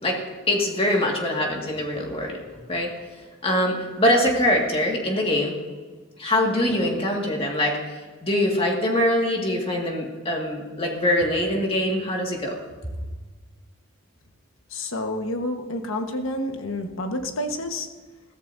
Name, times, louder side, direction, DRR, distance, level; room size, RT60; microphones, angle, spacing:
voice 1, 0.0-2.4 2.7-2.9 3.4-5.6 6.2-7.8 8.2-12.6, left 1 dB, 30° left, 0 dB, 2.0 m, -23 dB
voice 2, 14.7-17.9, left 1 dB, 90° left, 5 dB, 1.3 m, -29 dB
21.5 x 14.5 x 2.7 m, 1.3 s
head